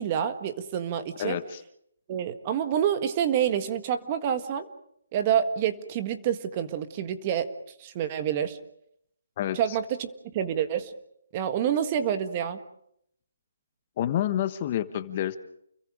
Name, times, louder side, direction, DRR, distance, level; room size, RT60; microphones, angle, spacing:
voice 1, 0.0-1.4 2.1-4.7 5.1-7.5 7.8-8.6 9.5-10.9 11.3-12.6, right 9 dB, 30° right, 8 dB, 1.6 m, -27 dB
voice 2, 1.2-1.6 9.4-9.6 14.0-15.4, left 11 dB, 30° left, 10 dB, 1.3 m, -28 dB
29.5 x 22.5 x 5.1 m, 0.72 s
hypercardioid pair, 160°, 0 cm